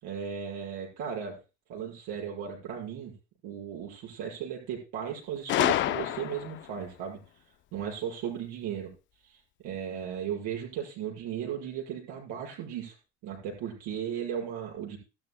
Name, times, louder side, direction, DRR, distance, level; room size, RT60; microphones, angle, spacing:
voice 1, 0.0-1.4 1.7-3.1 3.4-7.2 7.7-8.9 9.6-12.9 13.2-15.0, right 8 dB, 55° right, -1 dB, 5.9 m, -36 dB
Gunshot gunfire, 5.5-6.7, left 13 dB, 35° left, 0.6 m, -27 dB
15.5 x 13.0 x 2.2 m, 0.30 s
cardioid pair, 145°, 34 cm